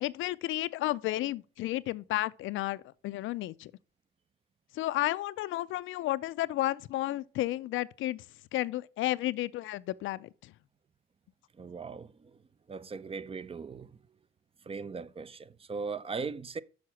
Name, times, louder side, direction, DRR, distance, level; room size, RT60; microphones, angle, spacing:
voice 1, 0.0-3.7 4.7-8.2 8.5-10.5, left 16 dB, 80° left, 0.4 m, -32 dB
voice 2, 11.6-12.3 12.7-13.9 14.7-16.6, right 4 dB, 30° right, 0.5 m, -39 dB
6.4 x 5.8 x 5.7 m
cardioid pair, 90°, 20 cm